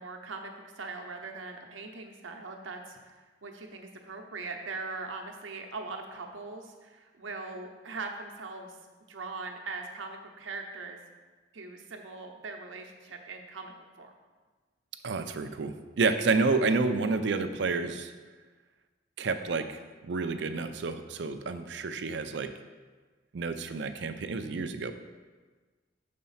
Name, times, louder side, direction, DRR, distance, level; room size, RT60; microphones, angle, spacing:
voice 1, 0.0-8.8 9.1-11.0 11.5-14.1, right 3 dB, 90° right, 3 dB, 0.8 m, -41 dB
voice 2, 15.0-18.1 19.2-22.5 23.3-24.9, right 4 dB, 65° right, 9 dB, 0.5 m, -29 dB
6.5 x 4.2 x 5.6 m, 1.4 s
head